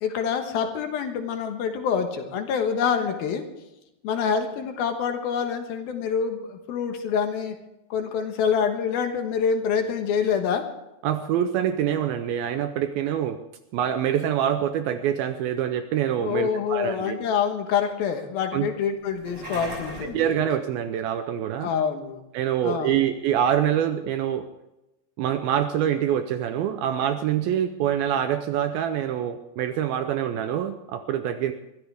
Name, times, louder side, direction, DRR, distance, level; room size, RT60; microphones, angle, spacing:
voice 1, 0.0-3.4 4.0-7.6 7.9-10.6 16.2-20.3 21.6-22.2 22.6-23.0, left 7 dB, 70° left, 5 dB, 3.0 m, -26 dB
voice 2, 11.0-13.4 13.7-17.2 18.5-18.7 20.0-21.7 22.3-24.5 25.2-31.5, right 10 dB, 80° right, 9 dB, 2.2 m, -25 dB
sound 1, 19.0-20.2, equal, 30° right, 6.6 m, -36 dB
22.0 x 14.5 x 3.5 m, 0.92 s
omnidirectional pair, 4.8 m